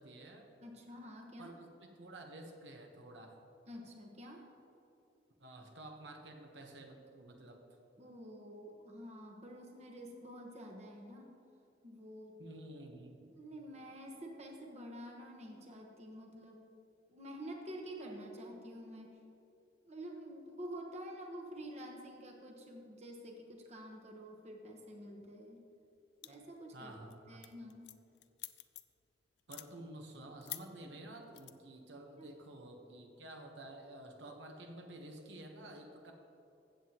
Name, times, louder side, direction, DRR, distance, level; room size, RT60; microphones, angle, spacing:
voice 1, 0.0-0.5 1.4-1.7 2.0-3.4 5.4-7.6 12.4-13.3 26.7-27.4 29.5-36.1, right 1 dB, 85° right, 3 dB, 1.0 m, -51 dB
voice 2, 0.6-1.5 3.7-4.5 8.0-11.4 11.8-12.3 13.3-16.7 17.1-19.1 19.8-25.6 26.2-27.9 32.2-32.3, equal, 40° right, 1 dB, 1.1 m, -48 dB
sound 1, 26.2-26.6 26.9-27.1 27.4-29.0 29.4-29.7 30.4-30.6 31.4-31.5, left 16 dB, 65° left, 0.4 m, -46 dB
15.5 x 7.7 x 2.9 m, 2.8 s
head